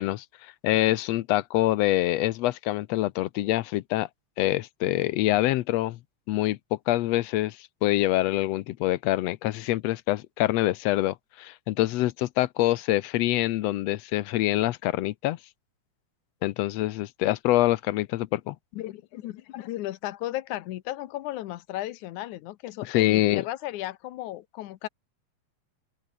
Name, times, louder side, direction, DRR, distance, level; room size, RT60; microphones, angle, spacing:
voice 1, 0.0-4.1 4.4-6.0 6.3-15.4 16.4-18.6 22.9-23.4, left 16 dB, 70° left, 1.7 m, -25 dB
voice 2, 18.7-24.9, left 15 dB, 85° left, 2.4 m, -35 dB
open air
omnidirectional pair, 3.4 m